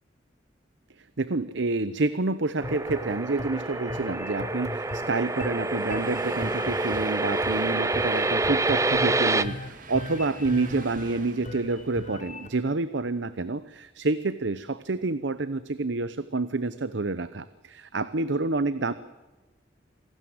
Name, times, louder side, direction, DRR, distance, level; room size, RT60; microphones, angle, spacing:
voice 1, 1.0-18.9, right 3 dB, 70° right, 14 dB, 0.9 m, -28 dB
sound 1, 2.6-12.5, left 2 dB, 35° left, 1.3 m, -39 dB
sound 2, 2.6-9.4, right 2 dB, 15° right, 0.7 m, -27 dB
Train, 3.5-12.9, right 3 dB, 45° right, 2.6 m, -46 dB
27.0 x 18.5 x 7.9 m, 1.2 s
head